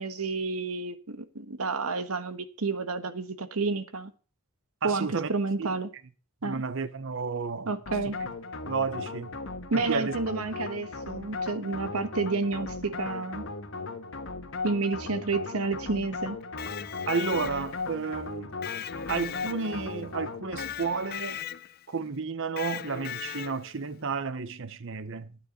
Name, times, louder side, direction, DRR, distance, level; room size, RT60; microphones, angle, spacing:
voice 1, 0.0-4.1 4.8-5.9 6.4-6.6 7.7-8.2 9.7-13.4 14.6-16.4, right 3 dB, 80° right, 1.3 m, -30 dB
voice 2, 4.8-5.3 5.6-5.7 6.4-7.7 8.6-9.3 9.7-10.1 17.1-18.5 19.1-21.4 21.9-25.4, right 5 dB, 60° right, 0.9 m, -32 dB
sound 1, 7.9-21.0, left 3 dB, 60° left, 1.5 m, -37 dB
Electric guitar, 16.4-17.9 18.6-20.0 20.6-21.8 22.6-23.8, left 10 dB, 45° left, 0.5 m, -38 dB
11.5 x 9.7 x 5.3 m
head